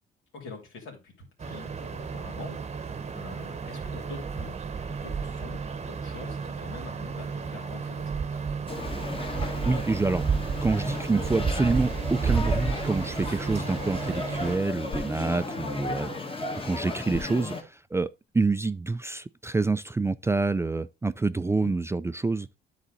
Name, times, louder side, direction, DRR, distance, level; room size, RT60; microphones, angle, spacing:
voice 1, 0.3-4.6 4.9-8.4 21.4-21.7, left 4 dB, 90° left, 3.1 m, -45 dB
sound 1, 1.4-14.6, right 5 dB, 35° right, 0.9 m, -32 dB
sound 2, 8.7-17.6, left 3 dB, 25° left, 1.6 m, -35 dB
voice 2, 9.6-10.2 10.6-22.5, right 3 dB, 15° right, 0.3 m, -27 dB
sound 3, 11.4-18.3, left 2 dB, 60° left, 1.8 m, -47 dB
9.9 x 4.1 x 4.0 m
cardioid pair, 90°, 20 cm